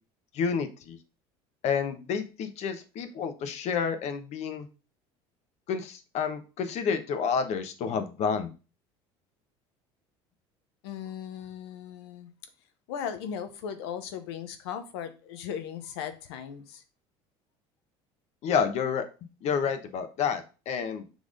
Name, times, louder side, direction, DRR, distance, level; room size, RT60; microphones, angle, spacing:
voice 1, 0.3-1.0 1.6-4.7 5.7-8.5 18.4-19.0 19.4-21.0, left 6 dB, 55° left, 9 dB, 1.1 m, -29 dB
voice 2, 10.8-12.3 12.9-16.8, left 8 dB, 90° left, 9 dB, 1.0 m, -37 dB
6.4 x 3.5 x 5.1 m, 0.33 s
supercardioid pair, 110°, 14 cm